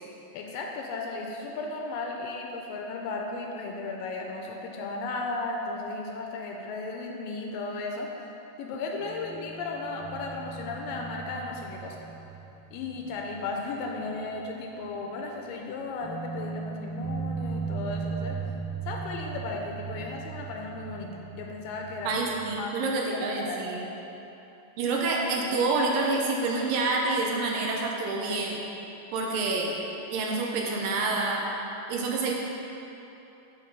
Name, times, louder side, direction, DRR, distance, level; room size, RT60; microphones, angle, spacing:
voice 1, 0.3-8.1 8.6-12.0 12.7-18.4 18.9-22.2 22.5-22.7 23.1-23.6, left 3 dB, 80° left, 1 dB, 2.2 m, -35 dB
sound 1, 9.0-14.4 14.7-14.8 16.0-22.6, right 5 dB, 65° right, 2.4 m, -38 dB
voice 2, 22.0-23.9 24.8-28.6 29.1-29.8 30.1-31.5 31.9-32.3, right 3 dB, 80° right, -1 dB, 2.3 m, -27 dB
9.2 x 3.8 x 5.3 m, 3.0 s
omnidirectional pair, 4.2 m